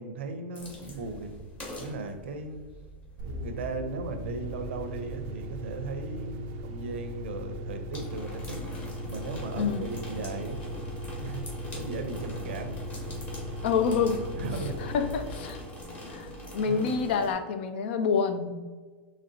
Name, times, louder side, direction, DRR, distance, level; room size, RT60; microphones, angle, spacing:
voice 1, 0.0-1.4 1.8-2.6 3.2-8.6 9.0-10.6 11.2-11.4 11.7-12.8 14.4-14.8 16.2-16.3 16.6-17.0, right 3 dB, 90° right, 6 dB, 0.6 m, -37 dB
sound 1, 0.5-17.3, left 1 dB, 20° left, 0.9 m, -44 dB
sound 2, 3.2-16.7, equal, 40° right, 0.3 m, -38 dB
voice 2, 9.5-9.9 13.6-14.3 14.8-15.6 16.1-18.5, left 6 dB, 65° left, 9 dB, 0.5 m, -27 dB
4.1 x 3.0 x 2.7 m, 1.4 s
supercardioid pair, 150°, 6 cm